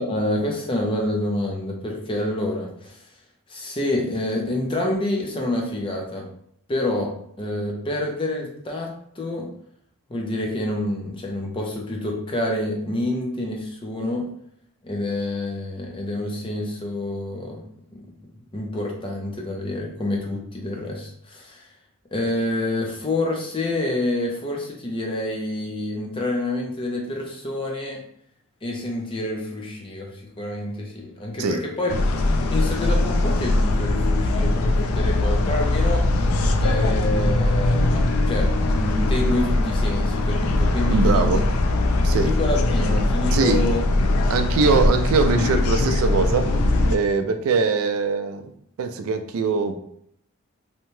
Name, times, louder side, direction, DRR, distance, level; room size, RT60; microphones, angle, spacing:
voice 1, 0.0-3.0 3.5-6.3 6.7-7.1 7.4-8.9 9.2-9.5 10.1-14.3 14.8-17.6 18.0-18.1 18.5-21.7 22.1-28.0 28.6-31.9 32.3-36.1 36.6-41.3 42.1-43.9, left 1 dB, 25° left, 0 dB, 0.5 m, -27 dB
sound 1, 31.9-47.0, left 2 dB, 85° left, 0.3 m, -21 dB
voice 2, 40.9-41.4 42.0-42.3 43.3-43.6 44.3-46.5 46.9-48.5 48.8-49.8, right 4 dB, 80° right, 8 dB, 0.3 m, -22 dB
2.8 x 2.2 x 2.9 m, 0.69 s
head